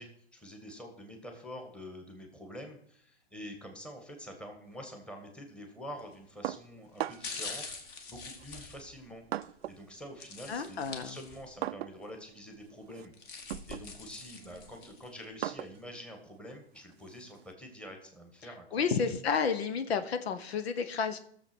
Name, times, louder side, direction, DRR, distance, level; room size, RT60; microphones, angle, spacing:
voice 1, 0.0-7.8 8.1-13.1 13.7-18.8, equal, 5° left, 3 dB, 1.6 m, -47 dB
sound 1, 6.0-6.3 6.9-9.5 10.2-11.6 12.0-12.1 12.9-15.1 15.6-15.7, left 4 dB, 30° left, 1.8 m, -44 dB
sound 2, 6.4-7.5 8.4-9.9 10.2-17.5, right 13 dB, 65° right, 0.6 m, -41 dB
voice 2, 10.5-11.2 18.7-21.2, left 6 dB, 65° left, 10 dB, 1.2 m, -31 dB
14.5 x 7.1 x 6.1 m, 0.63 s
hypercardioid pair, 140°, 34 cm